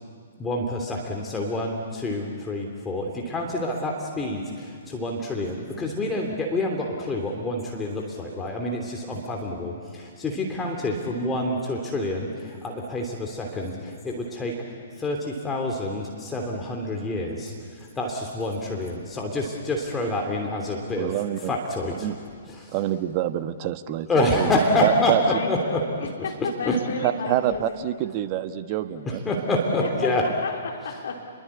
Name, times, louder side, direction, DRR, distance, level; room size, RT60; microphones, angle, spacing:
voice 1, 0.4-14.6 15.0-22.1 22.5-22.8 24.1-25.8 26.2-26.8 29.0-30.3, left 1 dB, 15° left, 0 dB, 3.1 m, -27 dB
voice 2, 21.0-21.5 22.0-22.2 22.7-24.1 24.3-24.5 24.8-25.2 27.0-29.2, right 12 dB, 35° right, 10 dB, 1.2 m, -26 dB
voice 3, 24.8-27.9 29.8-31.3, left 4 dB, 60° left, 1 dB, 3.7 m, -32 dB
29.0 x 23.0 x 8.6 m, 2.1 s
figure-of-eight pair, 120°, 0 cm